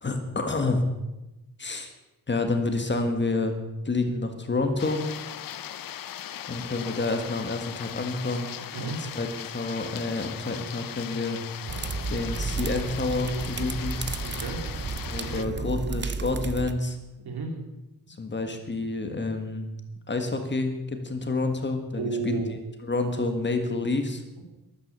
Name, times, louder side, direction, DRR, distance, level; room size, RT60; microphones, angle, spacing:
voice 1, 0.0-0.8 1.6-1.9 2.3-3.6 3.8-5.0 6.5-8.5 8.8-11.4 12.1-14.0 15.1-17.0 18.2-19.7 20.1-22.4 22.8-24.2, left 3 dB, 30° left, 6 dB, 1.7 m, -28 dB
sound 1, 4.8-15.5, left 11 dB, 65° left, 0.6 m, -39 dB
sound 2, 11.7-16.7, right 4 dB, 30° right, 0.6 m, -32 dB
voice 2, 14.2-14.6 15.2-15.7 17.2-17.5 22.0-22.6 24.4-24.5, right 4 dB, 80° right, 3 dB, 3.3 m, -33 dB
13.0 x 13.0 x 6.8 m, 1.0 s
wide cardioid pair, 180°, 37 cm